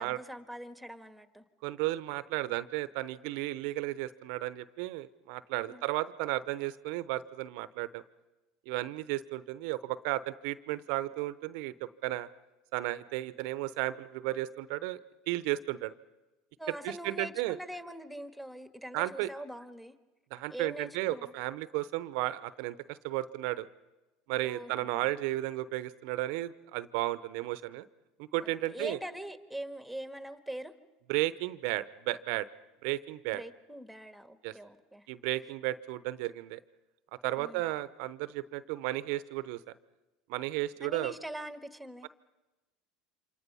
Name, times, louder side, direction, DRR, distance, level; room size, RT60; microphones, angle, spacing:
voice 1, 0.0-1.4 5.6-5.8 16.6-19.9 20.5-21.3 24.4-25.1 28.4-30.7 33.2-35.1 37.4-37.6 40.8-42.1, right 1 dB, ahead, 9 dB, 1.7 m, -43 dB
voice 2, 1.6-8.0 8.7-12.3 12.7-15.0 15.3-15.9 16.8-17.6 18.9-19.3 20.3-23.7 24.3-27.9 28.2-29.0 31.1-32.5 32.8-33.4 34.4-34.5 35.1-36.6 37.2-39.6 40.3-41.1, right 17 dB, 65° right, 16 dB, 0.8 m, -34 dB
28.5 x 26.0 x 5.6 m, 1.1 s
hypercardioid pair, 80°, 0 cm